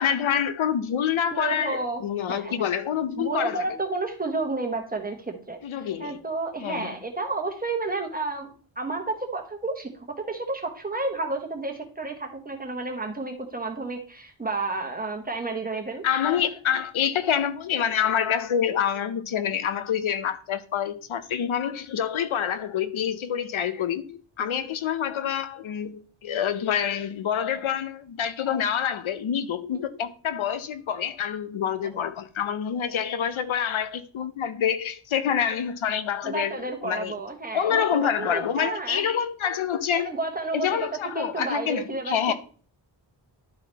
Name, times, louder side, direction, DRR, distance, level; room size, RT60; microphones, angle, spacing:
voice 1, 0.0-3.6 5.6-6.2 6.6-7.0 16.0-37.1 37.5-40.1 40.5-42.3, left 8 dB, 80° left, 0.8 m, -27 dB
voice 2, 1.3-2.0 2.3-2.6 3.2-16.0 24.6-24.7 29.7-29.8 36.2-39.0 40.0-40.7 41.1-42.1, right 3 dB, 20° right, 1.3 m, -31 dB
11.5 x 4.2 x 4.1 m
wide cardioid pair, 170°, 48 cm